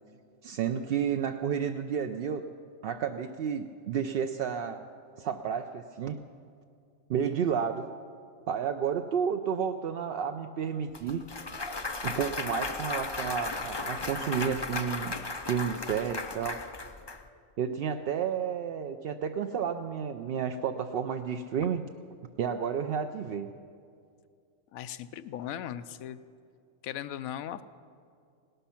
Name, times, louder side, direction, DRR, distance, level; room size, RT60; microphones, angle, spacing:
voice 1, 0.4-2.5 2.8-4.9 5.2-6.2 7.1-7.9 8.5-11.2 12.0-15.2 15.4-16.6 17.6-21.8 22.4-23.5, right 7 dB, 65° right, 6 dB, 0.6 m, -31 dB
Clapping / Cheering / Applause, 10.9-17.2, left 3 dB, 30° left, 0.5 m, -35 dB
voice 2, 24.7-26.2 26.8-27.6, left 10 dB, 90° left, 13 dB, 1.0 m, -38 dB
17.5 x 12.0 x 5.8 m, 2.3 s
omnidirectional pair, 1.4 m